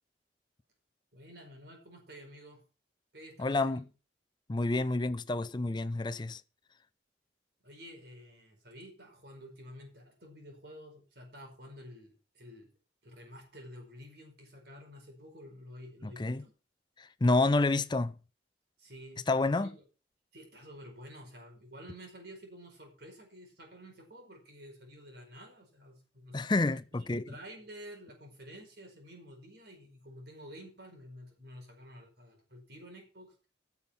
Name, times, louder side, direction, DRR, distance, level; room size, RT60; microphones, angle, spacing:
voice 1, 1.1-2.6 3.1-3.8 7.6-12.7 13.0-16.5 18.8-19.7 20.3-26.5 27.1-33.5, equal, 60° right, 5.1 m, -50 dB
voice 2, 3.4-3.8 4.5-6.4 16.0-16.4 17.0-18.1 19.3-19.7 26.3-27.3, left 2 dB, 25° left, 0.5 m, -29 dB
16.0 x 7.2 x 5.8 m
head